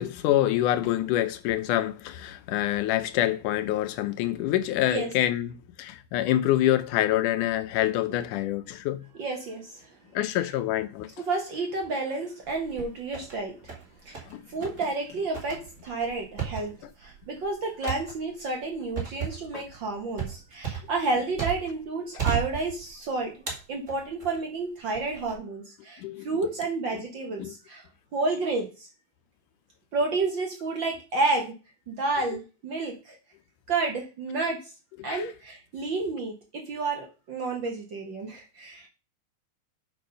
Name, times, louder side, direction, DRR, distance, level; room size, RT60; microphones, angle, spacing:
voice 1, 0.0-9.0 10.1-11.1 14.2-14.4 19.5-19.6 26.0-26.3 26.9-27.0 27.4-27.5 35.0-35.3, left 13 dB, 80° left, 2.3 m, -26 dB
voice 2, 9.2-9.9 11.3-13.5 14.0-16.7 17.0-23.3 23.7-27.9 28.1-28.9 29.9-31.5 31.9-33.2 33.7-34.7 35.0-38.9, right 3 dB, 55° right, 1.3 m, -30 dB
sound 1, 12.4-13.4 13.7-14.3 14.6-14.8 15.3-21.8 22.2-23.0 23.5-24.4 24.9-25.3, right 8 dB, 25° right, 2.2 m, -34 dB
7.4 x 5.5 x 5.4 m
omnidirectional pair, 3.7 m